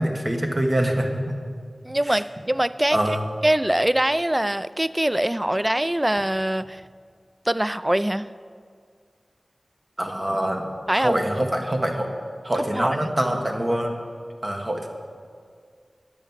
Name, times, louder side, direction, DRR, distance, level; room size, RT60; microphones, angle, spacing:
voice 1, 0.0-1.4 2.0-2.2 2.9-3.2 10.0-12.1 12.4-14.0 14.4-14.9, right 1 dB, 35° right, 2 dB, 1.5 m, -25 dB
voice 2, 1.9-3.2 3.4-6.8 7.5-8.3 10.9-11.2 12.7-13.0, right 1 dB, 15° right, 15 dB, 0.4 m, -23 dB
10.5 x 9.3 x 7.3 m, 2.1 s
wide cardioid pair, 65°, 0 cm